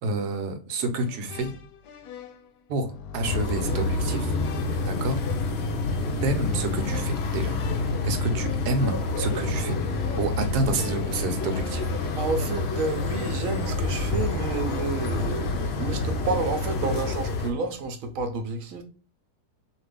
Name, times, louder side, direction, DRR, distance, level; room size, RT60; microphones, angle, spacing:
voice 1, 0.0-1.5 2.7-2.9 3.1-4.3 4.9-5.2 6.2-7.6 8.0-9.8 10.2-11.9, right 2 dB, 85° right, 1.2 m, -28 dB
sound 1, 1.0-16.7, left 5 dB, 85° left, 1.1 m, -42 dB
sound 2, 3.2-17.5, left 3 dB, 65° left, 0.6 m, -28 dB
voice 2, 12.1-18.8, right 4 dB, 65° right, 0.9 m, -30 dB
2.8 x 2.5 x 3.3 m
omnidirectional pair, 1.7 m